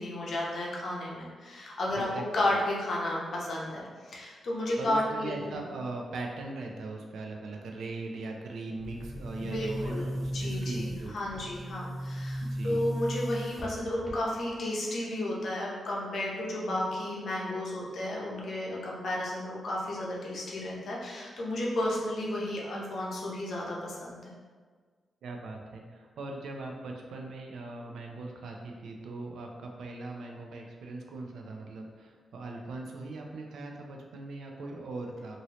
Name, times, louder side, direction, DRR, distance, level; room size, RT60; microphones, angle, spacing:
voice 1, 0.0-2.1 2.3-5.6 9.4-24.3, left 1 dB, 60° left, -4 dB, 0.7 m, -33 dB
voice 2, 1.9-2.2 4.8-11.4 12.4-12.9 25.2-35.4, right 2 dB, 90° right, 1 dB, 0.4 m, -40 dB
Boom, 8.8-14.6, equal, 5° right, 0.6 m, -36 dB
3.0 x 2.6 x 2.9 m, 1.5 s
wide cardioid pair, 140°, 0 cm